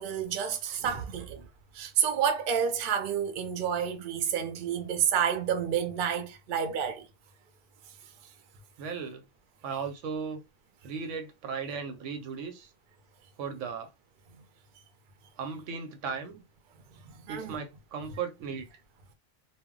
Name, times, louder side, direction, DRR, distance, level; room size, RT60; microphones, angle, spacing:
voice 1, 0.0-1.4 1.7-7.1 17.0-17.6, right 8 dB, 55° right, 0.6 m, -29 dB
voice 2, 8.8-9.2 9.6-10.4 10.8-12.7 13.4-13.9 15.4-16.4 17.3-18.8, right 6 dB, 85° right, 0.9 m, -36 dB
2.2 x 2.0 x 3.6 m
omnidirectional pair, 1.3 m